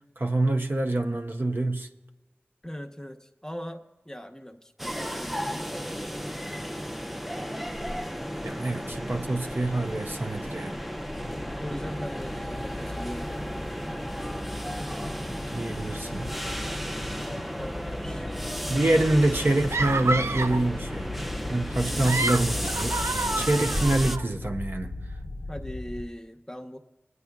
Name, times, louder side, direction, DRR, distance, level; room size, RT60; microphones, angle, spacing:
voice 1, 0.2-1.9 8.4-10.8 15.5-16.3 18.7-21.1 21.5-23.0 23.3-24.9, right 2 dB, 55° right, 0.7 m, -26 dB
voice 2, 2.6-6.3 11.6-13.8 17.6-18.2 21.9-22.5 25.5-26.8, equal, 15° left, 0.9 m, -40 dB
sound 1, 4.8-24.2, equal, 5° right, 0.5 m, -34 dB
sound 2, 11.2-26.1, left 2 dB, 55° left, 0.5 m, -38 dB
sound 3, 19.7-20.7 21.8-24.2, right 2 dB, 85° right, 0.4 m, -29 dB
21.0 x 9.5 x 2.3 m
wide cardioid pair, 50°, 4 cm